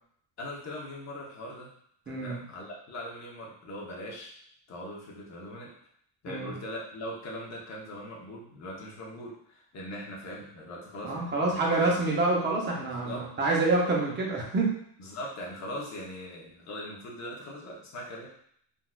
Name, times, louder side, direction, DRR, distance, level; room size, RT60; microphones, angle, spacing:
voice 1, 0.4-1.7 2.1-4.3 4.7-5.7 6.2-11.7 12.9-13.3 15.0-18.3, left 1 dB, 35° left, -3 dB, 0.8 m, -40 dB
voice 2, 2.1-2.4 6.3-6.5 11.0-14.7, right 2 dB, 25° right, -2 dB, 0.6 m, -27 dB
3.9 x 2.4 x 2.3 m, 0.66 s
cardioid pair, 170°, 45 cm